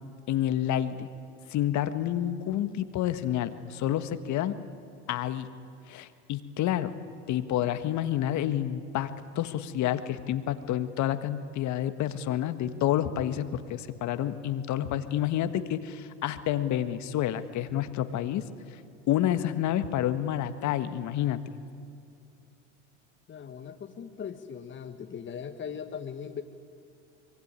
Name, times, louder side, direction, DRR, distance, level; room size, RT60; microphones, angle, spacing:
voice 1, 0.3-1.1 1.5-4.6 5.1-5.5 5.9-6.9 7.3-9.1 9.3-18.4 19.1-21.4, left 11 dB, 50° left, 11 dB, 1.7 m, -29 dB
voice 2, 23.3-26.4, left 7 dB, 30° left, 6 dB, 1.5 m, -39 dB
25.5 x 22.5 x 9.8 m, 2.5 s
hypercardioid pair, 90°, 36 cm